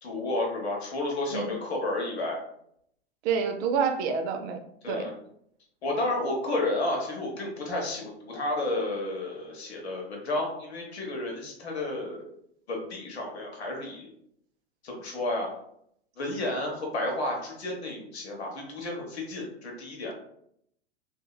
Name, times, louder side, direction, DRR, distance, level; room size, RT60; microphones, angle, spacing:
voice 1, 0.0-2.4 4.8-5.1 5.8-12.3 12.7-14.1 14.8-15.5 16.2-20.1, left 2 dB, 80° left, 0 dB, 1.0 m, -31 dB
voice 2, 3.2-4.6 4.9-5.1, right 6 dB, 30° right, 5 dB, 0.4 m, -27 dB
2.8 x 2.6 x 2.2 m, 0.71 s
figure-of-eight pair, 95°, 33 cm